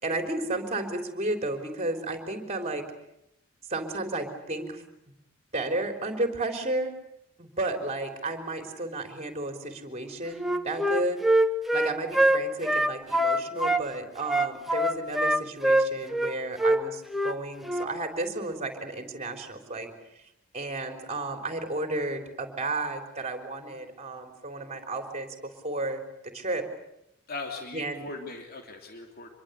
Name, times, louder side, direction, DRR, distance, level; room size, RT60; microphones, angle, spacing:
voice 1, 0.0-2.8 3.7-4.8 5.5-6.9 7.4-11.2 11.7-19.9 20.5-25.3 25.6-26.6 27.7-28.1, right 2 dB, 30° right, 6 dB, 3.9 m, -32 dB
Wind instrument woodwind instrument, 10.4-13.8 14.3-16.3 16.6-16.8 17.1-17.4 17.6-17.9, right 1 dB, ahead, 1.1 m, -24 dB
voice 2, 27.3-29.3, left 3 dB, 50° left, 4 dB, 3.0 m, -39 dB
25.5 x 22.5 x 8.3 m, 0.81 s
head